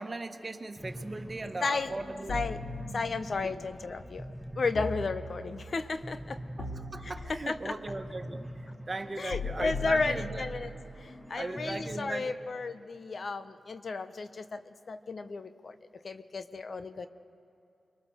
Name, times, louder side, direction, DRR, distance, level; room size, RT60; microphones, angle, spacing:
voice 1, 0.0-2.3 3.4-3.5 6.6-10.4 11.3-12.3, right 2 dB, 40° right, 7 dB, 1.5 m, -38 dB
sound 1, 0.8-12.0, equal, 5° left, 2.2 m, -44 dB
voice 2, 1.6-1.9 2.3-2.6 2.9-4.3 4.6-6.4 7.0-7.8 9.2-10.7 11.0-15.7 16.0-17.1, left 4 dB, 60° left, 11 dB, 0.9 m, -33 dB
sound 2, 2.3-3.4 4.7-5.7 6.6-7.7 9.3-10.7, left 3 dB, 85° left, 2.5 m, -39 dB
25.0 x 22.0 x 6.6 m, 2.8 s
cardioid pair, 45°, 0 cm